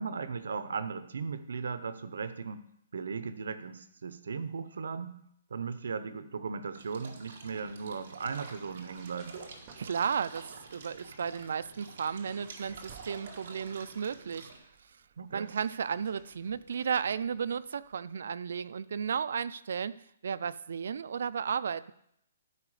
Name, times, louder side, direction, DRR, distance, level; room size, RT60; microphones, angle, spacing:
voice 1, 0.0-2.6 2.9-5.2 5.5-9.4 15.2-15.5, right 5 dB, 80° right, 12 dB, 0.7 m, -37 dB
sound 1, 6.7-14.6, right 4 dB, 45° right, 1.5 m, -49 dB
sound 2, 7.6-18.0, right 5 dB, 20° right, 0.8 m, -60 dB
voice 2, 9.8-14.5 15.3-21.9, right 7 dB, 60° right, 14 dB, 0.4 m, -34 dB
12.5 x 5.0 x 4.9 m, 0.74 s
hypercardioid pair, 175°, 0 cm